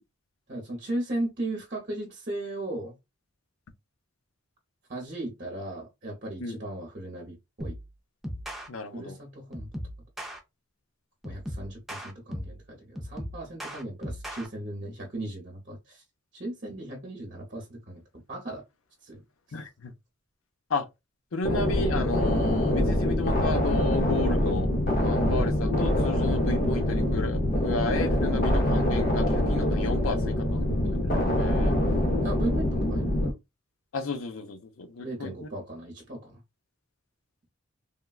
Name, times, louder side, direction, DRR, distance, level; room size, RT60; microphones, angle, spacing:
voice 1, 0.5-3.0 4.9-7.8 8.9-9.7 11.2-16.0 16.3-18.6 19.0-19.2 32.2-33.3 35.0-36.4, right 1 dB, 40° right, 0.8 m, -36 dB
sound 1, 7.6-7.9 8.2-8.7 9.5-10.4 11.2-12.6 13.0-14.5, equal, ahead, 0.4 m, -37 dB
voice 2, 8.7-9.2 19.5-19.9 20.7-20.9 21.3-24.7 25.0-31.7 33.9-35.5, left 3 dB, 85° left, 0.6 m, -33 dB
sound 2, 21.4-33.3, left 1 dB, 40° left, 0.7 m, -25 dB
3.5 x 2.2 x 2.3 m
head